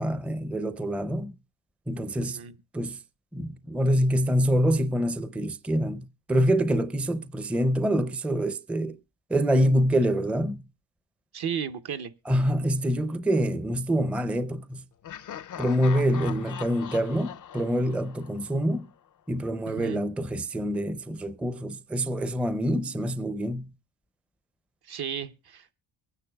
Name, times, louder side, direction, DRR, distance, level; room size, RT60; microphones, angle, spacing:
voice 1, 0.0-1.3 1.9-2.4 2.7-3.0 3.3-9.0 9.3-10.6 12.3-14.8 15.6-18.9 19.3-23.7, equal, 5° right, 0.5 m, -26 dB
voice 2, 2.2-2.6 11.3-12.1 19.7-20.0 24.9-25.7, right 8 dB, 55° right, 0.9 m, -34 dB
Laughter, 15.0-18.9, left 9 dB, 45° left, 0.5 m, -41 dB
23.0 x 9.7 x 2.3 m
cardioid pair, 85°, 47 cm